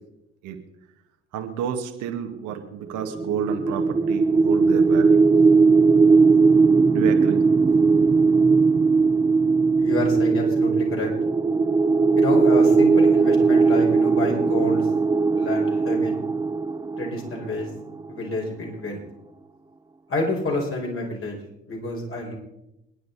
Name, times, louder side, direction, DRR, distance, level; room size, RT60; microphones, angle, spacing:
voice 1, 1.3-5.2 6.9-7.4 7.9-8.2, right 9 dB, 65° right, 4 dB, 2.1 m, -30 dB
sound 1, 3.0-18.0, right 4 dB, 10° right, 0.6 m, -19 dB
voice 2, 9.8-11.1 12.2-14.9 15.4-16.2 17.0-17.7 18.1-19.0 20.1-21.4 21.7-22.4, left 2 dB, 40° left, -1 dB, 5.5 m, -28 dB
28.0 x 10.5 x 4.2 m, 0.86 s
hypercardioid pair, 55°, 33 cm